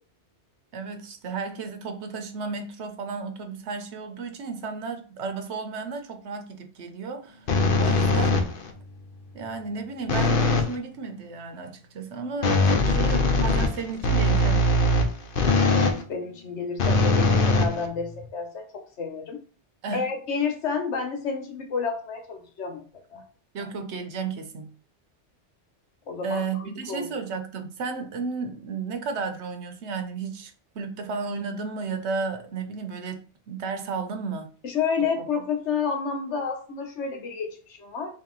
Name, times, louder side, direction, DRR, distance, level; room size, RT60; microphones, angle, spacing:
voice 1, 0.7-7.5 7.8-8.4 9.3-14.6 19.8-20.0 23.5-24.7 26.2-34.5, right 4 dB, 75° right, 1.0 m, -33 dB
sound 1, 7.5-8.7 10.1-10.8 12.4-16.0 16.8-18.3, left 2 dB, 55° left, 0.8 m, -21 dB
voice 2, 15.7-19.4 19.9-23.2 26.1-27.2 34.6-38.1, left 5 dB, 75° left, 1.2 m, -30 dB
3.6 x 2.8 x 3.8 m
omnidirectional pair, 1.2 m